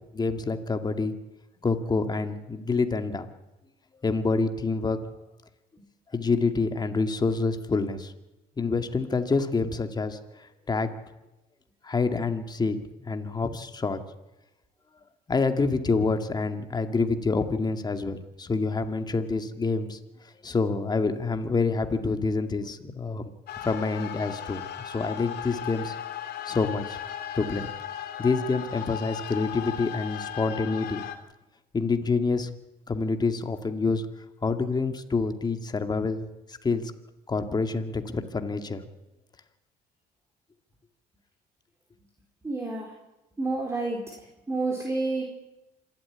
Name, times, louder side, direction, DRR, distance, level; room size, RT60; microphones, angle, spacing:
voice 1, 0.1-1.1 1.6-3.3 4.0-5.0 6.1-8.1 8.6-10.9 11.8-12.8 13.1-14.0 15.3-20.0 20.4-23.3 23.6-26.0 26.5-27.0 27.3-27.7 28.2-31.0 31.7-32.5 32.9-34.1 34.4-36.2 36.5-36.9 37.3-38.8, left 4 dB, 25° left, 7 dB, 2.0 m, -27 dB
sound 1, 23.5-31.2, left 10 dB, 70° left, 2.8 m, -36 dB
voice 2, 42.4-42.9 43.4-44.0 44.5-45.2, right 3 dB, 15° right, -1 dB, 4.2 m, -29 dB
26.5 x 12.5 x 9.7 m, 0.99 s
cardioid pair, 110°, 17 cm